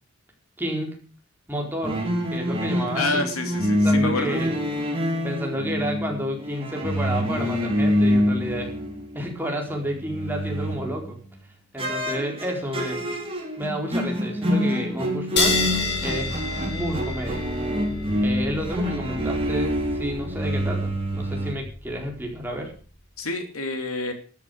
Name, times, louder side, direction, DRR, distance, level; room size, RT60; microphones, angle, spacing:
voice 1, 0.6-1.0 1.5-2.0 2.3-3.3 3.8-4.6 5.2-8.7 9.1-11.2 11.7-13.1 13.6-15.6 16.0-16.4 16.7-17.4 18.2-22.7, equal, 10° right, 0 dB, 4.3 m, -30 dB
sound 1, 1.8-9.3 9.7-11.2 11.8-21.5, equal, 25° right, 3.6 m, -26 dB
voice 2, 2.9-4.4 23.2-24.1, left 2 dB, 90° left, 6 dB, 3.2 m, -27 dB
sound 2, 15.4-22.3, left 3 dB, 55° left, 4.5 m, -30 dB
13.0 x 10.5 x 6.5 m, 0.39 s
head